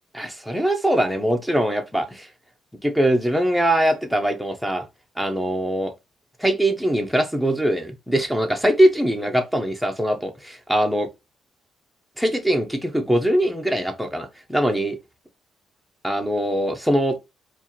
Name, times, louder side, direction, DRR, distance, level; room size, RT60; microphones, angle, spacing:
voice 1, 0.1-2.3 2.8-4.8 5.2-5.9 6.4-11.1 12.2-15.0 16.0-17.2, right 1 dB, ahead, 0.8 m, -22 dB
4.4 x 2.5 x 2.8 m
cardioid pair, 90°, 0 cm